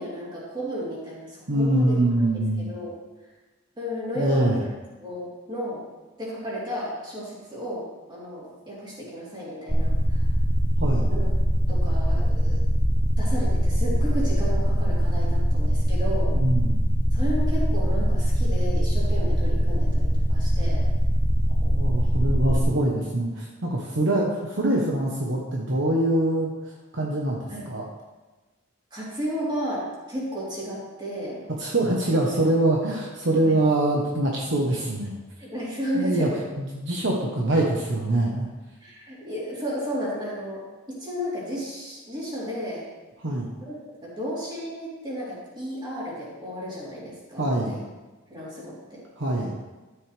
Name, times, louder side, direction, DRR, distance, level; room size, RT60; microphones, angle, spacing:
voice 1, 0.0-2.3 2.7-2.9 3.8-4.7 5.0-5.8 6.2-10.2 11.1-11.3 11.7-12.6 13.2-16.4 17.1-20.9 27.5-27.6 28.9-31.4 33.5-33.6 35.4-36.5 38.8-40.6 40.9-42.8 43.6-47.8 48.3-49.0, equal, 25° right, -7 dB, 3.6 m, -33 dB
voice 2, 1.5-2.7 4.1-4.6 10.8-11.1 16.3-16.8 21.5-27.9 31.6-35.2 35.9-36.3 36.6-38.5 43.2-43.5 47.4-47.8 49.2-49.5, right 1 dB, 60° right, -1 dB, 1.2 m, -24 dB
sound 1, 9.7-22.7, equal, 10° left, 0.8 m, -22 dB
12.5 x 7.8 x 3.4 m, 1.2 s
head